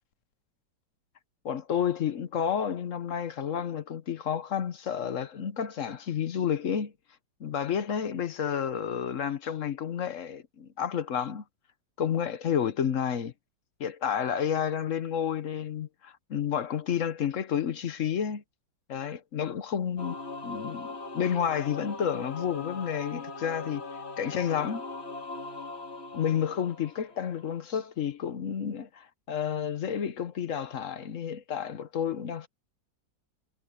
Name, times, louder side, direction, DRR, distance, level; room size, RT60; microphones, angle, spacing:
voice 1, 1.4-6.9 7.4-11.4 12.0-13.3 13.8-18.4 18.9-20.2 20.4-23.9 24.2-24.8 26.1-32.5, left 8 dB, 55° left, 1.1 m, -30 dB
Singing / Musical instrument, 20.0-27.5, left 3 dB, 35° left, 2.4 m, -40 dB
omnidirectional pair, 2.0 m